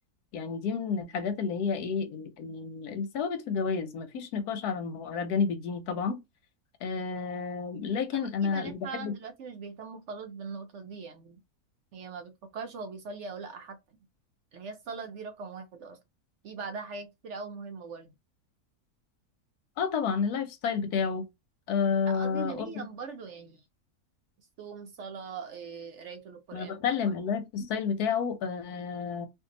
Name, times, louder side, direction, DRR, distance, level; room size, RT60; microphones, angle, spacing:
voice 1, 0.3-6.2 6.8-9.1 19.8-21.3 21.7-22.8 26.5-29.3, left 6 dB, 80° left, 1.2 m, -30 dB
voice 2, 8.1-11.4 11.9-13.8 14.5-16.0 16.4-18.1 22.1-23.6 24.6-26.8, right 5 dB, 65° right, 0.8 m, -41 dB
2.7 x 2.5 x 3.7 m
omnidirectional pair, 1.6 m